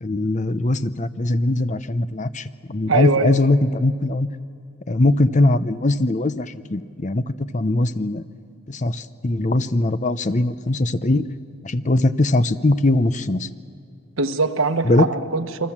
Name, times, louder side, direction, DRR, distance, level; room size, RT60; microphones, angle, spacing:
voice 1, 0.0-4.3 4.9-8.2 8.7-11.2 11.6-13.5 14.8-15.1, left 2 dB, 35° left, 13 dB, 0.7 m, -21 dB
voice 2, 2.9-3.3 14.2-15.7, right 3 dB, 85° right, 8 dB, 1.2 m, -22 dB
28.0 x 24.0 x 7.4 m, 2.3 s
head